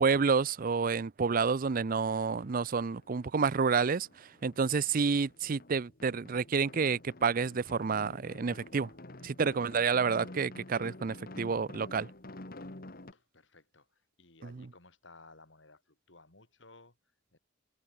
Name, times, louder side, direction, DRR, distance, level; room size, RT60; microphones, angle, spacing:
voice 1, 0.0-8.9 9.2-12.1, right 5 dB, 45° right, 0.5 m, -29 dB
sound 1, 2.3-3.6 3.8-13.1, left 1 dB, 50° left, 1.9 m, -49 dB
voice 2, 12.8-17.4, left 3 dB, 65° left, 4.0 m, -59 dB
head